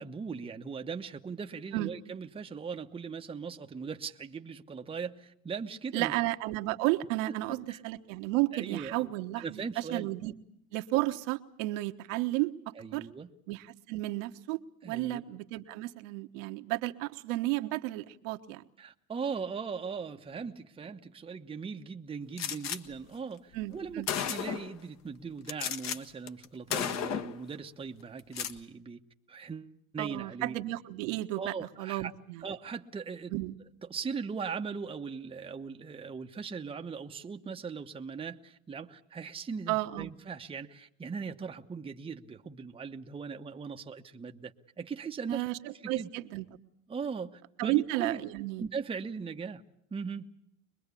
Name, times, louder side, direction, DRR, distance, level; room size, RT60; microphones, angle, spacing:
voice 1, 0.0-6.1 7.3-7.4 7.7-7.8 8.5-10.1 12.7-13.3 14.8-15.2 18.8-29.0 29.3-30.6 31.4-32.1 32.4-33.3 33.9-45.4 45.8-46.1 46.9-48.2 48.6-49.6 49.9-50.3, right 5 dB, 15° right, 4 dB, 1.0 m, -39 dB
voice 2, 5.9-10.3 10.7-13.1 13.5-14.6 14.8-18.6 23.5-24.1 30.0-31.5 31.8-32.4 33.3-33.6 39.7-40.1 45.3-46.5 47.6-48.7, right 18 dB, 65° right, 7 dB, 1.4 m, -33 dB
Gunshot gunfire, 22.4-22.8 23.6-23.7 24.1-24.8 25.5-26.0 26.3-26.5 26.7-27.4 28.2-28.6, left 8 dB, 40° left, 1.5 m, -33 dB
24.0 x 21.5 x 8.4 m, 0.70 s
supercardioid pair, 115°, 41 cm